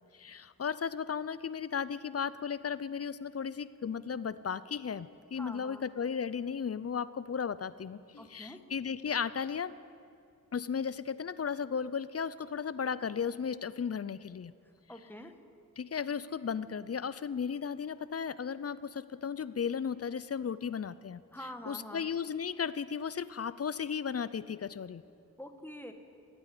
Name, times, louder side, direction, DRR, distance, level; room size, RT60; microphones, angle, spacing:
voice 1, 0.2-9.8 10.5-14.5 15.8-21.2 21.7-25.0, left 6 dB, 40° left, 16 dB, 0.5 m, -35 dB
voice 2, 5.4-5.8 8.2-8.6 14.9-15.3 21.3-22.1 25.4-25.9, equal, 5° left, 6 dB, 1.3 m, -45 dB
15.0 x 9.0 x 10.0 m, 2.4 s
wide cardioid pair, 80°, 36 cm